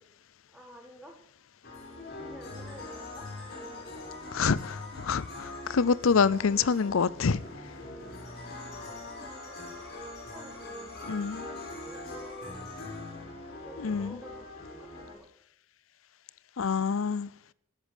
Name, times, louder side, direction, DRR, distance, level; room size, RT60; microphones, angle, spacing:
voice 1, 0.5-1.2 2.2-4.1 8.7-9.9 10.2-12.7 13.4-15.3, equal, 5° right, 4.4 m, -51 dB
sound 1, 1.6-15.1, left 2 dB, 55° left, 6.7 m, -42 dB
voice 2, 4.3-7.4 11.1-11.4 13.8-14.1 16.6-17.3, left 5 dB, 85° left, 0.6 m, -26 dB
14.5 x 10.5 x 8.1 m
head